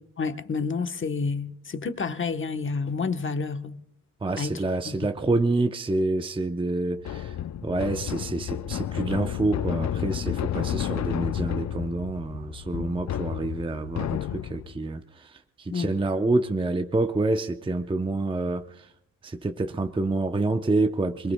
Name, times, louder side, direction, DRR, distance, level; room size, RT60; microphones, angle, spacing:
voice 1, 0.2-3.8 4.4-4.6 4.8-5.0 15.7-15.9, left 4 dB, 35° left, 1.0 m, -29 dB
voice 2, 4.2-7.3 7.6-18.9 19.2-21.3, right 2 dB, 15° right, 0.6 m, -27 dB
sound 1, 7.0-14.8, left 10 dB, 55° left, 0.5 m, -31 dB
27.0 x 21.5 x 2.2 m
cardioid pair, 105°, 34 cm